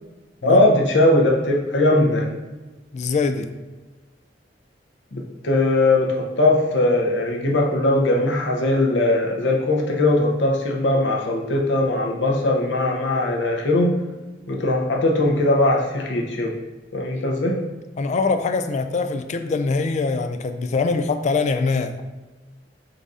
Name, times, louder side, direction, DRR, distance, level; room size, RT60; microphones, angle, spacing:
voice 1, 0.4-2.3 5.1-14.0 14.5-16.5 16.9-17.6, left 2 dB, 80° left, -1 dB, 0.8 m, -20 dB
voice 2, 2.9-3.5 17.1-17.3 18.0-22.0, left 4 dB, 40° left, 8 dB, 0.3 m, -23 dB
3.9 x 2.7 x 4.7 m, 1.2 s
head